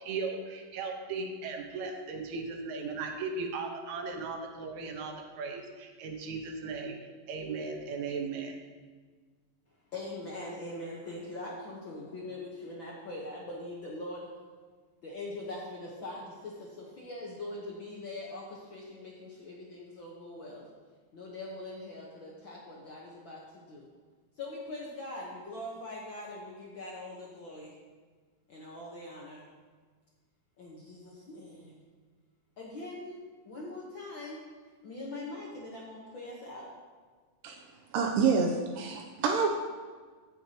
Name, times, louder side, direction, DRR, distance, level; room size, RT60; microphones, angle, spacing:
voice 1, 0.0-7.0 7.3-8.6, right 4 dB, 65° right, 2 dB, 2.2 m, -37 dB
voice 2, 9.9-14.3 15.0-20.7 21.1-23.9 24.4-27.7 28.5-29.5 30.6-31.8 32.6-33.2 33.4-34.5 34.8-36.7, left 2 dB, 70° left, -4 dB, 1.1 m, -42 dB
voice 3, 37.9-39.5, right 5 dB, 90° right, 2 dB, 2.3 m, -27 dB
15.0 x 6.7 x 2.9 m, 1.5 s
omnidirectional pair, 3.9 m